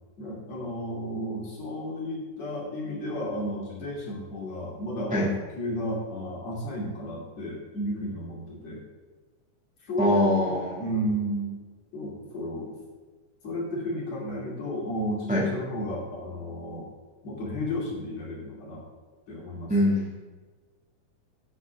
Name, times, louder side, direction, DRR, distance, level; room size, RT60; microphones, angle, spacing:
voice 1, 0.2-5.3 5.6-8.8 9.8-11.6 11.9-12.7 13.4-16.9 17.2-18.8 19.3-19.7, equal, 50° left, -4 dB, 3.9 m, -33 dB
voice 2, 10.0-10.8 15.3-15.4 19.7-20.1, left 1 dB, 5° right, -4 dB, 1.1 m, -23 dB
13.5 x 8.6 x 3.6 m, 1.4 s
omnidirectional pair, 4.0 m